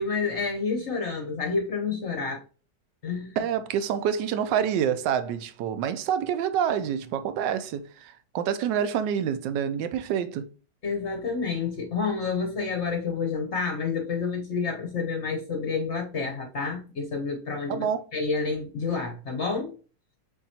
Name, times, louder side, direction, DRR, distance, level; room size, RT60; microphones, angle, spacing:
voice 1, 0.0-2.4 3.0-3.4 10.8-17.9 18.1-19.7, left 4 dB, 55° left, 0.8 m, -29 dB
voice 2, 3.4-10.5 17.7-18.0, right 8 dB, 80° right, 1.2 m, -27 dB
6.7 x 2.8 x 2.7 m
omnidirectional pair, 1.9 m